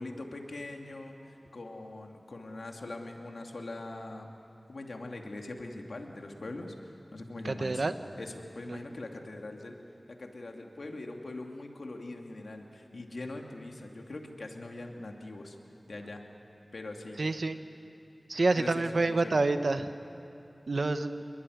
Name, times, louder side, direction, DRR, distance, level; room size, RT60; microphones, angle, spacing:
voice 1, 0.0-4.3 4.7-7.8 8.1-9.8 10.1-15.6 15.9-16.2 16.7-17.2 18.3-19.4, left 2 dB, 85° left, 2 dB, 2.6 m, -42 dB
voice 2, 7.4-7.9 8.7-8.8 17.2-17.6 18.3-19.9 20.7-21.2, right 3 dB, 75° right, 9 dB, 1.2 m, -28 dB
27.5 x 22.0 x 9.5 m, 2.6 s
wide cardioid pair, 65°, 0 cm